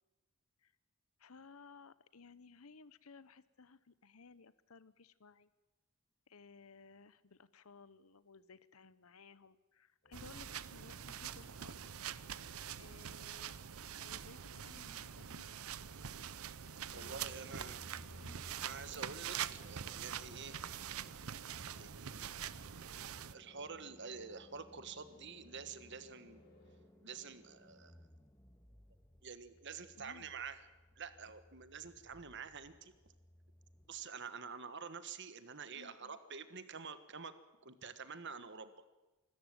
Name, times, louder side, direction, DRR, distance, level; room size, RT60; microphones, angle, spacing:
voice 1, 1.2-5.5 6.3-11.8 12.8-13.6 14.0-15.5 16.9-17.7 18.2-18.7 29.9-30.3 35.7-36.2, left 4 dB, 75° left, 17 dB, 0.9 m, -59 dB
sound 1, 10.0-26.8, left 1 dB, 45° left, 4.2 m, -66 dB
sound 2, 10.1-23.3, right 9 dB, 80° right, 0.7 m, -45 dB
sound 3, 16.9-33.9, left 1 dB, 15° left, 1.6 m, -62 dB
voice 2, 16.9-17.8 18.6-20.6 21.7-22.3 23.3-26.4 27.0-27.9 29.2-30.7 31.0-32.9 33.9-37.3 37.6-38.7, right 5 dB, 55° right, 12 dB, 1.4 m, -48 dB
25.5 x 13.5 x 9.0 m, 1.2 s
head